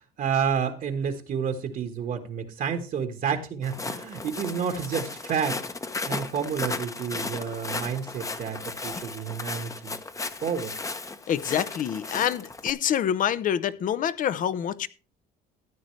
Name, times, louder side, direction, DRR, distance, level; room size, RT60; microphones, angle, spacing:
voice 1, 0.2-5.6 6.0-9.9 10.4-10.8, right 7 dB, 55° right, 1.3 m, -30 dB
Walk footsteps, 3.6-12.7, left 3 dB, 20° left, 0.8 m, -35 dB
voice 2, 11.3-14.9, left 9 dB, 50° left, 0.6 m, -26 dB
14.0 x 9.1 x 3.2 m
cardioid pair, 110°, 17 cm